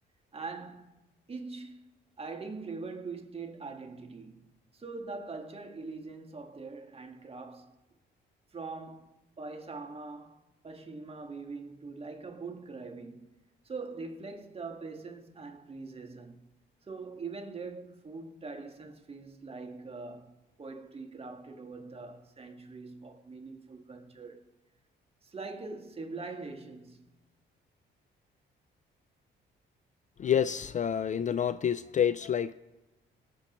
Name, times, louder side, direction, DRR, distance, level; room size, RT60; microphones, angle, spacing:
voice 1, 0.3-0.9 1.3-4.4 4.7-7.7 8.5-13.4 13.6-16.5 16.8-24.5 25.2-27.1, right 4 dB, 30° right, 1.5 m, -43 dB
voice 2, 30.2-32.5, left 9 dB, 40° left, 0.4 m, -28 dB
23.0 x 7.6 x 3.0 m
cardioid pair, 90°, 20 cm